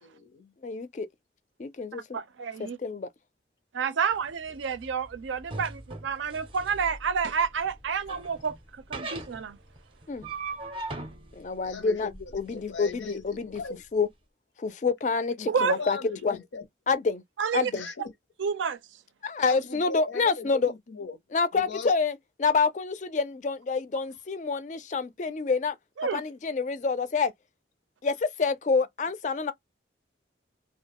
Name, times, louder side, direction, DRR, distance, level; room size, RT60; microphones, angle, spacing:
voice 1, 0.0-0.5 11.6-13.8 15.4-16.7 17.7-18.1 19.4-21.2 21.5-21.9, left 4 dB, 85° left, 0.6 m, -39 dB
voice 2, 0.6-1.1 1.6-2.2 2.6-3.1 10.1-10.3 11.3-13.5 13.9-14.1 14.6-16.0 16.2-16.4 16.9-17.2 17.5-17.9 19.2-20.7 21.3-25.8 26.1-27.3 28.0-29.5, left 4 dB, 40° left, 0.4 m, -27 dB
voice 3, 2.1-2.8 3.7-9.6 15.5-15.8 17.4-17.7 18.4-18.8 26.0-26.2, right 6 dB, 85° right, 0.5 m, -29 dB
sound 1, 4.1-13.7, right 3 dB, 30° right, 0.5 m, -41 dB
2.3 x 2.1 x 2.8 m
head